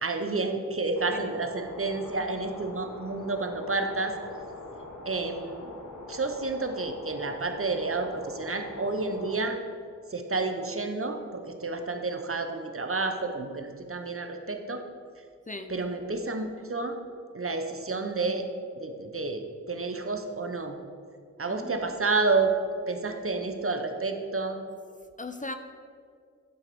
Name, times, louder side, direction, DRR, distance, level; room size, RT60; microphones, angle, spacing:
voice 1, 0.0-4.1 5.0-5.7 6.1-9.6 10.1-14.8 15.7-17.0 17.3-18.4 18.8-19.4 19.7-20.8 21.4-22.5 22.9-24.6, right 3 dB, 45° right, 6 dB, 1.0 m, -30 dB
sound 1, 1.0-9.4, left 2 dB, 85° left, 1.3 m, -43 dB
voice 2, 21.5-21.8 25.2-25.5, left 2 dB, 25° left, 7 dB, 0.7 m, -38 dB
10.5 x 4.8 x 6.9 m, 2.2 s
cardioid pair, 55°, 30 cm